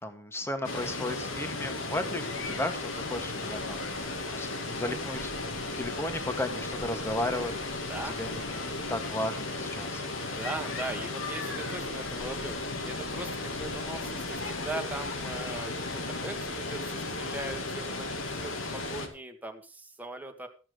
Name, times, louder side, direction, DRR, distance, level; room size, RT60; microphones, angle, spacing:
voice 1, 0.0-10.0, left 1 dB, 15° left, 6 dB, 1.8 m, -35 dB
Water, 0.6-19.1, left 2 dB, 85° left, 2.6 m, -35 dB
voice 2, 7.9-8.2 10.2-20.5, right 2 dB, 10° right, 4 dB, 1.9 m, -40 dB
14.5 x 8.9 x 5.1 m, 0.37 s
head